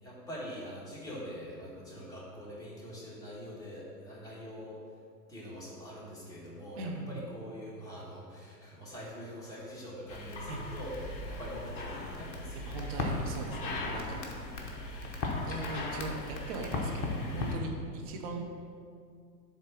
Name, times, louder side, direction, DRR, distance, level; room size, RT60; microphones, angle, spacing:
voice 1, 0.0-4.8 5.3-12.8 13.3-13.5, equal, 5° left, -7 dB, 1.7 m, -44 dB
voice 2, 6.8-7.2 10.5-10.7 12.5-14.2 15.4-18.4, right 3 dB, 25° right, 2 dB, 0.6 m, -39 dB
sound 1, 10.1-17.6, left 3 dB, 30° left, 0.9 m, -37 dB
7.4 x 3.6 x 5.8 m, 2.2 s
figure-of-eight pair, 105°, 50 cm